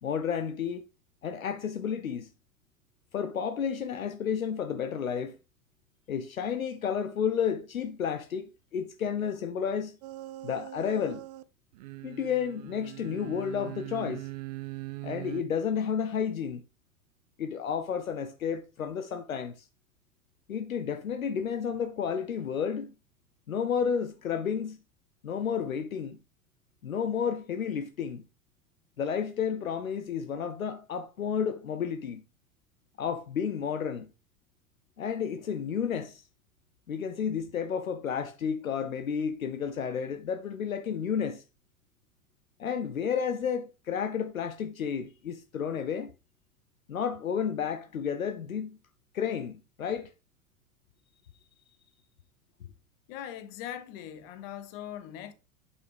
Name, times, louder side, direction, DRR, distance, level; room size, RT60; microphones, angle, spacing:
voice 1, 0.0-0.9 1.2-2.3 3.1-5.4 6.1-10.0 10.4-11.2 12.0-14.3 15.0-16.6 17.4-19.7 20.5-22.9 23.5-24.8 25.2-26.2 26.8-28.2 29.0-32.2 33.0-34.1 35.0-36.2 36.9-41.4 42.6-46.1 46.9-48.8 49.1-50.1, left 7 dB, 75° left, 0.7 m, -31 dB
sound 1, 10.0-11.4 11.7-15.4, right 18 dB, 30° right, 0.4 m, -41 dB
voice 2, 53.1-55.3, left 10 dB, 40° left, 1.3 m, -40 dB
8.2 x 5.5 x 3.4 m
figure-of-eight pair, 90°, 42 cm